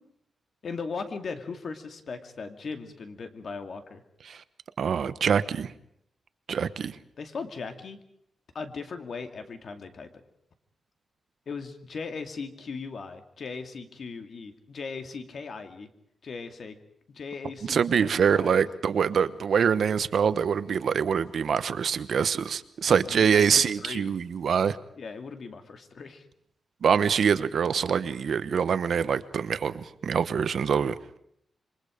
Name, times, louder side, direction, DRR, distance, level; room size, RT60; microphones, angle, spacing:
voice 1, 0.6-4.0 7.2-8.0 8.5-10.1 11.5-15.9 16.2-16.8 17.1-18.6 22.9-24.1 25.0-26.2, left 4 dB, 55° left, 7 dB, 2.4 m, -38 dB
voice 2, 4.8-5.7 6.5-6.9 17.7-24.8 26.8-30.9, right 7 dB, 65° right, 13 dB, 1.1 m, -24 dB
27.5 x 24.0 x 5.1 m, 0.71 s
wide cardioid pair, 120°, 0 cm